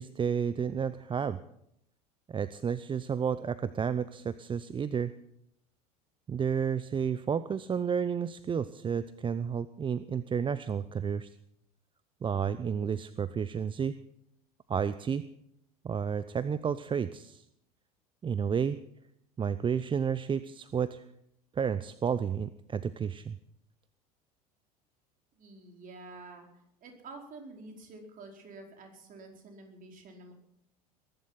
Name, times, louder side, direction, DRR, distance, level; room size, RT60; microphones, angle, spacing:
voice 1, 0.0-1.4 2.3-5.1 6.3-11.3 12.2-14.0 14.7-15.2 15.8-17.4 18.2-18.8 19.4-21.0 21.5-23.4, right 7 dB, 25° right, 15 dB, 0.7 m, -31 dB
voice 2, 25.3-30.3, right 3 dB, 45° right, 2 dB, 4.7 m, -49 dB
21.0 x 12.0 x 5.8 m, 0.75 s
hypercardioid pair, 75°, 20 cm